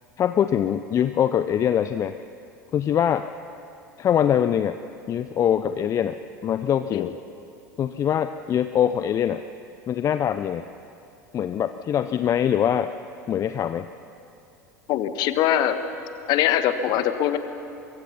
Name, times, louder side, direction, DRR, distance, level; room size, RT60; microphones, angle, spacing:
voice 1, 0.2-2.1 2.7-3.3 4.0-4.8 5.1-6.2 6.4-7.1 7.8-9.4 9.9-10.7 11.3-12.9 13.3-13.9, left 9 dB, 35° left, 11 dB, 0.6 m, -23 dB
voice 2, 14.9-15.8 16.3-17.4, left 11 dB, 50° left, 10 dB, 1.4 m, -22 dB
23.5 x 23.5 x 5.7 m, 2.7 s
figure-of-eight pair, 75°, 9 cm